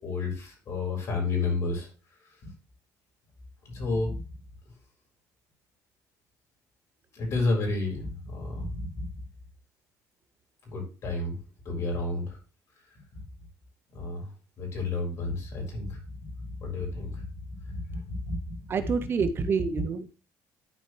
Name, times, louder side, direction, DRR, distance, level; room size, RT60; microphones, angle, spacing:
voice 1, 0.0-1.9 2.4-2.5 3.6-4.2 7.1-9.1 10.7-11.4 11.6-12.4 13.9-14.3 14.6-16.0 16.4-19.0 19.4-19.5 19.7-19.8, left 3 dB, 50° left, 2 dB, 4.5 m, -31 dB
voice 2, 18.7-20.1, right 5 dB, 35° right, 10 dB, 0.8 m, -28 dB
12.5 x 4.8 x 3.2 m, 0.33 s
cardioid pair, 135°, 6 cm